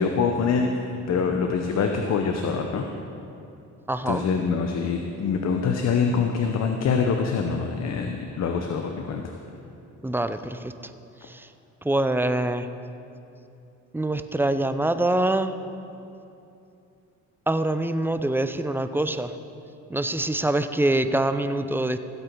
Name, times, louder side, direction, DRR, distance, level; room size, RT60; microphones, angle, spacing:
voice 1, 0.0-2.8 4.1-9.4, left 5 dB, 60° left, 4 dB, 0.9 m, -25 dB
voice 2, 3.9-4.2 10.0-10.7 11.2-11.5 11.8-12.7 13.9-15.5 17.5-19.3 19.9-22.0, right 1 dB, 5° right, 10 dB, 0.5 m, -24 dB
16.0 x 8.1 x 4.6 m, 2.7 s
cardioid pair, 90°, 30 cm